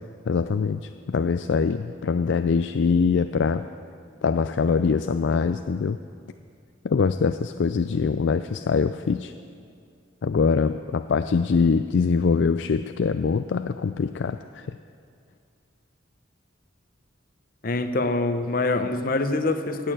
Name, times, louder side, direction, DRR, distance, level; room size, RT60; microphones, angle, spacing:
voice 1, 0.3-3.7 4.2-6.0 6.8-9.3 10.2-14.8, left 5 dB, 60° left, 10 dB, 0.4 m, -23 dB
voice 2, 17.6-19.9, left 2 dB, 45° left, 8 dB, 0.8 m, -25 dB
17.5 x 6.6 x 8.9 m, 2.3 s
head